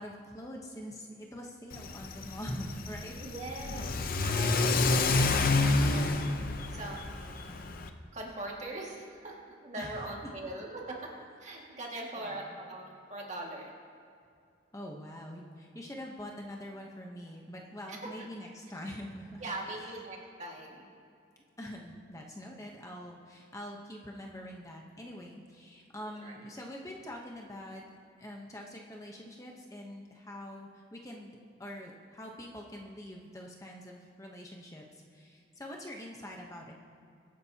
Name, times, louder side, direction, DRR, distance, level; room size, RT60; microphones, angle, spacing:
voice 1, 0.0-3.2 3.5-3.7 9.8-10.1 11.6-11.7 12.1-12.6 14.7-19.9 21.6-27.8 28.2-31.3 31.6-36.7, equal, 15° left, 0 dB, 0.9 m, -44 dB
Car / Accelerating revving vroom, 1.7-7.9, left 3 dB, 45° left, 0.7 m, -29 dB
voice 2, 3.2-6.1 6.7-7.5 8.1-11.1 11.4-13.7 17.9-18.1 19.4-20.9 26.0-26.4, right 2 dB, 35° right, -2 dB, 2.0 m, -42 dB
23.0 x 10.0 x 2.8 m, 2.4 s
head